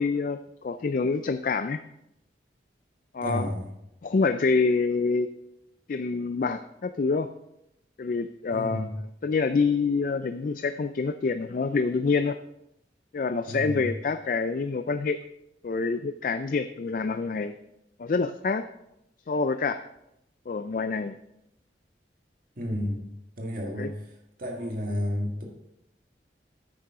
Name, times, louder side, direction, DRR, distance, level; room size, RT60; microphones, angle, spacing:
voice 1, 0.0-1.8 3.1-3.5 4.0-5.3 5.9-7.3 8.0-12.4 13.1-15.2 15.6-17.5 18.0-18.6 19.3-19.8 20.5-21.2 23.8-23.9, left 4 dB, 45° left, 10 dB, 0.3 m, -26 dB
voice 2, 3.2-3.7 8.5-8.9 13.5-13.9 22.6-23.1 23.4-24.0 24.4-25.4, left 1 dB, 50° right, 0 dB, 1.8 m, -31 dB
10.5 x 8.8 x 3.7 m, 0.84 s
head